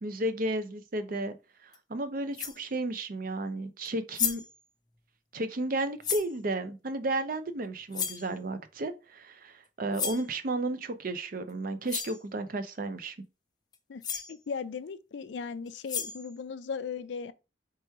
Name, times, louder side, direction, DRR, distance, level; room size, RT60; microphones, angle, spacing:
voice 1, 0.0-1.3 1.6-4.4 5.3-13.2, right 2 dB, 50° right, 0.5 m, -33 dB
sound 1, 1.7-1.8 2.3-2.6 3.8-3.9 4.1-4.6 6.0-6.3 7.9-8.3 9.9-10.3 11.5-11.6 11.9-12.2 13.7-13.8 14.0-14.3 15.7-16.3, left 7 dB, 25° left, 0.5 m, -33 dB
voice 2, 13.9-17.3, left 5 dB, 80° left, 0.4 m, -37 dB
3.4 x 3.0 x 4.5 m
head